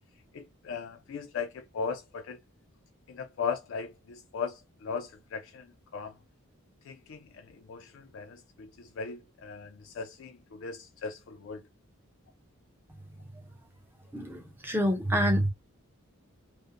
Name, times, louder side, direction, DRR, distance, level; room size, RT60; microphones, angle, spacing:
voice 1, 0.3-2.4 3.1-5.7 5.9-6.1 6.9-11.6, left 5 dB, 60° left, 0.3 m, -38 dB
voice 2, 14.1-15.5, equal, 10° right, 0.5 m, -27 dB
2.4 x 2.0 x 2.8 m
head